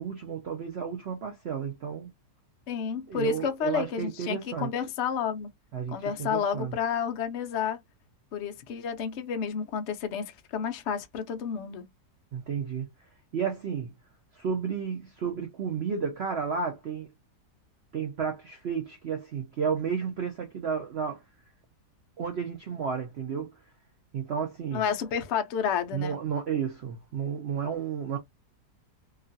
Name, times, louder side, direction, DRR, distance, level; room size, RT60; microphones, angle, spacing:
voice 1, 0.0-2.1 3.1-4.7 5.7-6.8 12.3-12.9 13.3-13.9 14.3-17.1 17.9-21.2 22.2-23.5 24.1-24.8 25.9-28.2, right 6 dB, 70° right, 0.6 m, -32 dB
voice 2, 2.7-5.5 5.9-7.8 8.3-11.9 24.7-26.2, left 7 dB, 75° left, 0.6 m, -30 dB
2.9 x 2.4 x 2.6 m
omnidirectional pair, 1.9 m